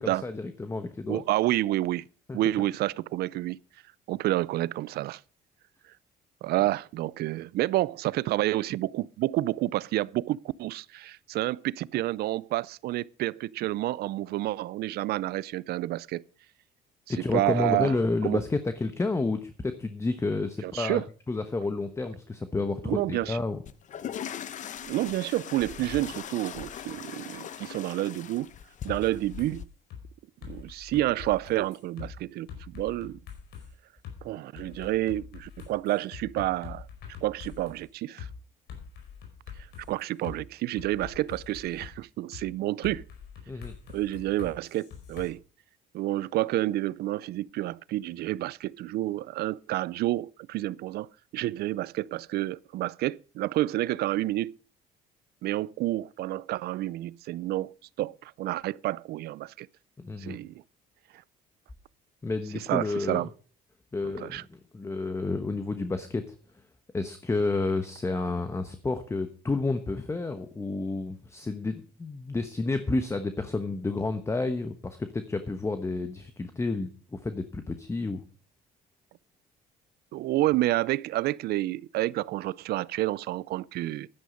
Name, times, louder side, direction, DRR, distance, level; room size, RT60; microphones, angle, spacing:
voice 1, 0.0-1.2 2.3-2.4 17.1-21.0 21.3-23.6 43.5-43.7 60.0-60.4 62.2-63.3 63.9-66.3 66.9-78.2, left 3 dB, 15° left, 1.1 m, -30 dB
voice 2, 1.1-2.0 2.3-3.6 4.1-5.2 6.4-16.2 17.3-17.9 18.2-18.4 20.6-21.0 22.8-23.4 24.8-28.5 28.8-29.7 30.4-33.2 34.2-36.9 37.2-38.3 39.9-43.0 43.9-45.4 45.9-51.1 51.3-54.6 55.4-59.7 60.2-60.6 62.7-63.3 64.0-64.4 80.1-84.1, right 16 dB, 70° right, 0.5 m, -29 dB
sound 1, 23.6-29.6, left 9 dB, 50° left, 0.8 m, -40 dB
sound 2, 28.9-29.5 29.9-30.0 30.4-32.1 32.5-33.7 34.0-34.2 34.5-37.8 38.2-38.3 38.7-40.4 40.8-41.9 42.3-42.4 42.8-45.3, left 7 dB, 75° left, 4.7 m, -44 dB
11.5 x 10.0 x 5.2 m
cardioid pair, 110°, 17 cm